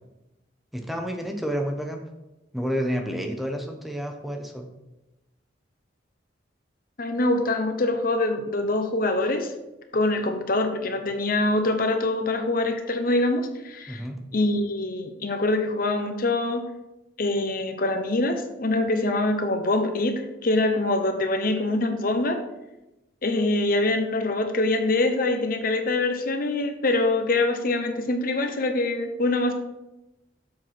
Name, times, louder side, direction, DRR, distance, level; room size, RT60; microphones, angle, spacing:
voice 1, 0.7-2.0 2.5-4.7 13.9-14.2, equal, ahead, 3 dB, 0.9 m, -30 dB
voice 2, 7.0-9.5 9.9-14.0 14.3-16.6 17.2-22.4 23.2-29.5, left 2 dB, 50° left, 6 dB, 0.8 m, -24 dB
7.5 x 4.7 x 5.8 m, 0.96 s
head